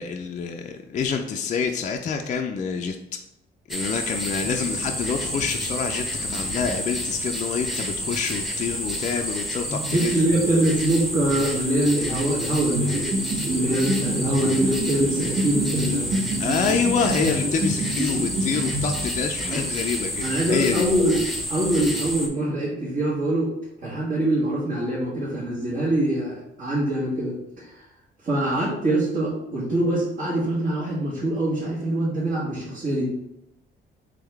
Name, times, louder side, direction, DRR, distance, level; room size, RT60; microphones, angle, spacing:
voice 1, 0.0-3.0 3.7-10.2 16.4-20.9, left 6 dB, 40° left, 4 dB, 0.4 m, -27 dB
sound 1, 3.7-22.3, equal, ahead, 0.8 m, -30 dB
voice 2, 9.7-16.2 19.5-19.6 20.2-21.2 21.5-23.5 23.8-27.8 28.2-33.1, right 1 dB, 50° right, -8 dB, 1.5 m, -24 dB
sound 2, 12.7-19.4, right 1 dB, 70° right, 0.9 m, -28 dB
3.6 x 3.4 x 3.4 m, 0.83 s
cardioid pair, 90°, 20 cm